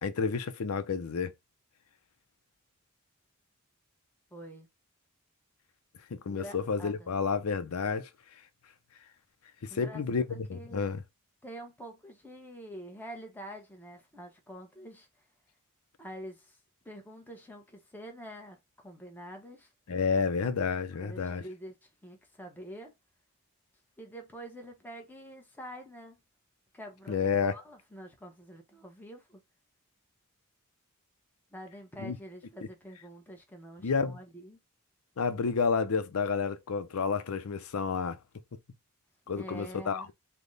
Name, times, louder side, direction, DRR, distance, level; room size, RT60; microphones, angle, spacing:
voice 1, 0.0-1.3 6.1-8.1 9.6-11.0 19.9-21.4 27.1-27.5 32.0-32.2 33.8-34.2 35.2-38.2 39.3-40.1, left 5 dB, 75° left, 0.5 m, -30 dB
voice 2, 4.3-4.7 6.3-7.1 9.7-10.9 11.4-15.1 16.0-16.6 16.8-18.6 18.8-19.7 20.9-22.9 24.0-26.2 26.7-29.4 31.5-34.6 39.3-40.1, equal, 10° left, 0.8 m, -46 dB
3.4 x 2.1 x 3.8 m
head